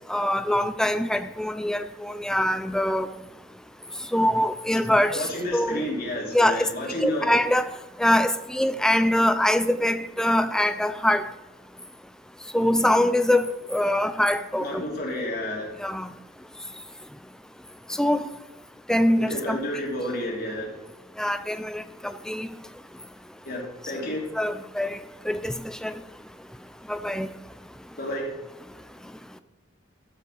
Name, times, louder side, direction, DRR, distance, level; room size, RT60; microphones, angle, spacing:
voice 1, 0.1-3.1 4.1-5.8 6.3-6.6 7.0-7.7 8.0-11.3 12.5-14.8 15.8-16.1 18.0-18.3 18.9-19.6 21.2-22.5 24.4-25.0 25.3-25.9 26.9-27.3, left 1 dB, 5° left, 0.5 m, -23 dB
voice 2, 5.1-7.3 14.6-15.7 19.3-20.8 23.4-24.3 28.0-28.2, left 1 dB, 55° left, 3.1 m, -30 dB
13.5 x 5.8 x 6.3 m
head